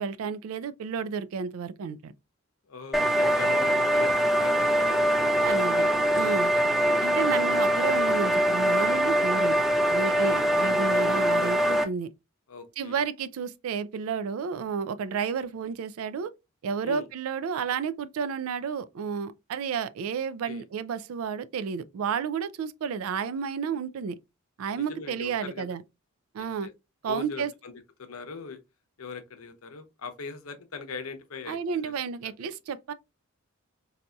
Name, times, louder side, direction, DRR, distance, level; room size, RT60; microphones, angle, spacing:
voice 1, 0.0-2.1 5.4-6.5 7.0-9.6 9.9-12.1 12.8-16.3 16.6-24.2 24.6-25.8 26.3-26.7 27.0-27.5 31.5-32.9, right 6 dB, 75° right, 0.3 m, -31 dB
voice 2, 2.7-5.9 10.2-10.4 12.5-13.0 16.8-17.1 20.4-20.6 24.7-25.7 26.4-26.7 27.0-27.7 28.0-28.6 29.0-31.9, left 5 dB, 80° left, 0.7 m, -40 dB
sound 1, 2.9-11.8, equal, ahead, 0.4 m, -23 dB
4.0 x 2.6 x 2.2 m
head